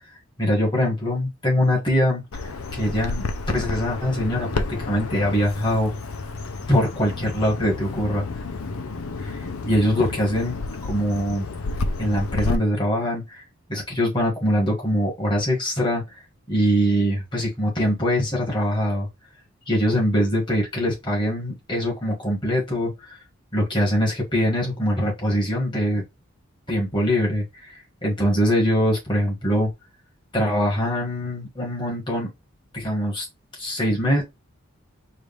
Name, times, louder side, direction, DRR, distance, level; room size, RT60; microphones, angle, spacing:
voice 1, 0.4-2.5 2.7-3.2 3.5-5.9 6.7-8.3 9.2-9.4 9.6-11.5 12.0-13.4 13.7-16.0 16.5-19.1 19.7-23.2 23.5-26.0 26.7-29.7 30.3-32.3 32.7-33.2 33.6-34.2, equal, 20° left, 1.8 m, -23 dB
Bird vocalization bird call bird song, 2.3-12.6, left 3 dB, 80° left, 0.7 m, -30 dB
4.8 x 2.6 x 3.5 m
head